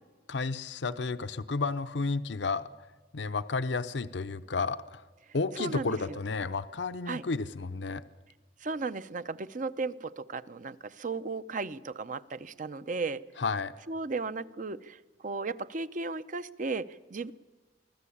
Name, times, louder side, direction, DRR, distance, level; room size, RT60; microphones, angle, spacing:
voice 1, 0.3-2.7 3.1-5.0 5.3-8.0 13.4-13.7, left 4 dB, 75° left, 11 dB, 0.7 m, -32 dB
voice 2, 5.3-6.2 7.1-7.2 8.6-13.2 13.9-17.3, right 3 dB, 45° right, 13 dB, 0.7 m, -35 dB
24.5 x 15.5 x 8.5 m, 1.4 s
head